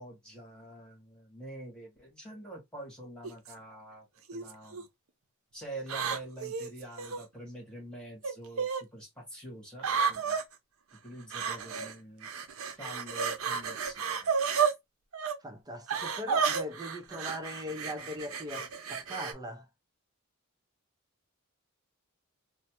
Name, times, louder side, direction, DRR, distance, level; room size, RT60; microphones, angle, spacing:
voice 1, 0.0-4.9 5.5-10.4 11.0-12.3 12.8-14.3 14.6-14.7, right 1 dB, 5° left, 1.5 m, -46 dB
sound 1, 3.2-3.5 4.3-4.8 5.9-7.2 8.2-8.8 9.8-10.4 11.3-11.9 12.2-14.7 15.1-15.4 15.9-19.3, right 6 dB, 75° right, 0.6 m, -32 dB
voice 2, 15.4-19.7, left 1 dB, 20° right, 0.5 m, -40 dB
3.2 x 2.0 x 2.9 m
head